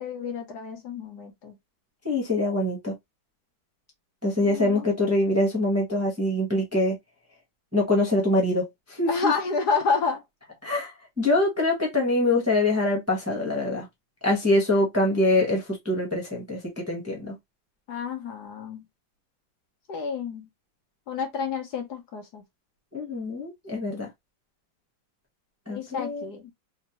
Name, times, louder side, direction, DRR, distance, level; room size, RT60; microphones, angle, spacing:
voice 1, 0.0-1.5 4.4-4.8 9.1-10.2 17.9-18.8 19.9-20.5 21.1-22.4 25.7-26.5, left 5 dB, 60° left, 1.4 m, -29 dB
voice 2, 2.0-2.9 4.2-7.0 7.7-9.3 10.6-13.9 14.2-17.3 22.9-24.1 25.7-26.3, left 2 dB, 10° right, 0.9 m, -24 dB
3.5 x 3.0 x 2.9 m
omnidirectional pair, 2.1 m